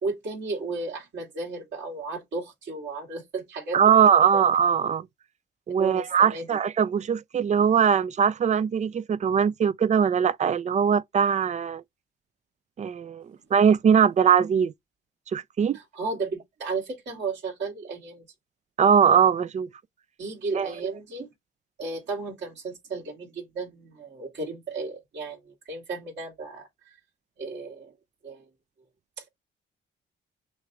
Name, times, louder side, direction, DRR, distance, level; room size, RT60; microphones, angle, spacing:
voice 1, 0.0-3.8 4.3-4.4 5.8-6.5 15.7-18.2 20.2-21.3 21.8-26.7 27.4-27.9 28.2-28.4, right 3 dB, 60° right, 2.7 m, -34 dB
voice 2, 3.7-5.1 5.7-11.8 12.8-13.3 13.5-14.7 15.3-15.8 18.8-19.7 20.5-20.7, right 7 dB, 35° right, 0.4 m, -21 dB
6.2 x 2.5 x 3.1 m
cardioid pair, 90°, 20 cm